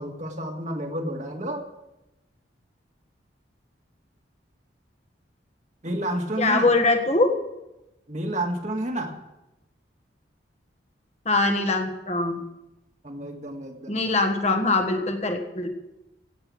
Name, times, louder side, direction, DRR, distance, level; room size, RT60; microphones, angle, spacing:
voice 1, 0.0-1.7 5.8-6.7 8.1-9.2 13.0-14.0, right 1 dB, 40° right, 3 dB, 1.9 m, -30 dB
voice 2, 6.4-7.3 11.2-12.4 13.9-15.7, left 2 dB, 35° left, 5 dB, 1.6 m, -22 dB
17.0 x 7.9 x 7.6 m, 0.94 s
head